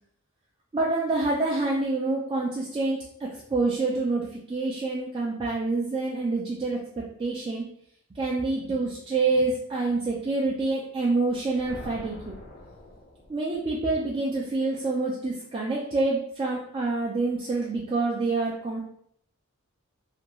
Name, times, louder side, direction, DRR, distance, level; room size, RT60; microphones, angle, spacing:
voice 1, 0.7-7.7 8.1-12.4 13.3-18.8, right 3 dB, 25° right, -5 dB, 0.3 m, -27 dB
sound 1, 11.2-13.8, left 1 dB, 45° left, 0.5 m, -45 dB
2.5 x 2.2 x 2.9 m, 0.67 s
head